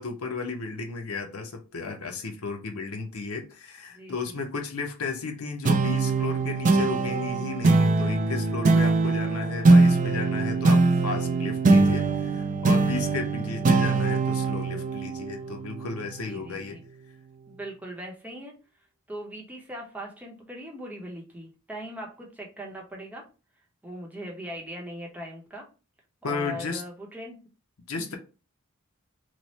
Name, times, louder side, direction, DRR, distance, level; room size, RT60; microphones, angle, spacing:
voice 1, 0.0-16.8 26.2-26.8 27.9-28.2, left 4 dB, 75° left, 0.7 m, -34 dB
voice 2, 3.9-4.4 13.6-13.7 16.3-16.8 17.5-18.6 19.1-23.2 23.8-25.7 26.2-27.4 28.0-28.2, equal, 5° right, 0.8 m, -40 dB
sound 1, 5.6-16.5, right 3 dB, 35° right, 0.4 m, -22 dB
3.1 x 2.1 x 4.0 m
head